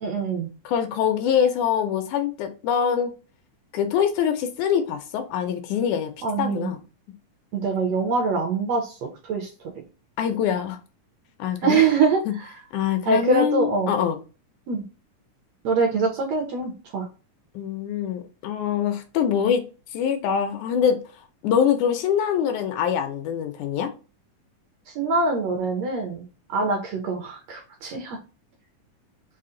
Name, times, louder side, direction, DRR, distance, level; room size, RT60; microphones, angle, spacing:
voice 1, 0.0-0.5 6.2-6.7 7.5-8.9 9.3-9.5 11.6-12.2 13.0-13.9 14.7-14.8 15.6-17.1 25.0-26.2 26.5-28.2, right 4 dB, 70° right, 1.7 m, -23 dB
voice 2, 0.7-3.1 3.7-6.1 6.4-6.8 10.2-10.8 11.4-11.8 12.3-12.4 12.7-14.2 17.6-19.6 19.9-21.0 21.4-23.9, left 8 dB, 80° left, 1.9 m, -24 dB
5.5 x 2.1 x 3.7 m
omnidirectional pair, 3.6 m